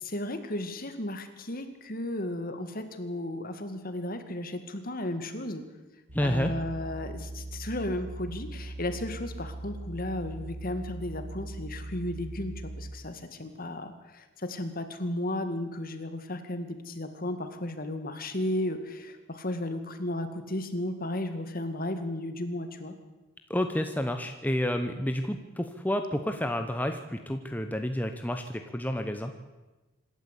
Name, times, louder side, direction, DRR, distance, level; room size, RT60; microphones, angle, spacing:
voice 1, 0.0-5.6 6.2-22.9, left 1 dB, 45° left, 8 dB, 2.2 m, -34 dB
voice 2, 6.1-6.5 23.5-29.3, left 1 dB, 10° left, 6 dB, 1.0 m, -30 dB
sound 1, 6.1-12.9, right 1 dB, 60° right, 3.3 m, -40 dB
26.0 x 12.5 x 8.4 m, 1.1 s
head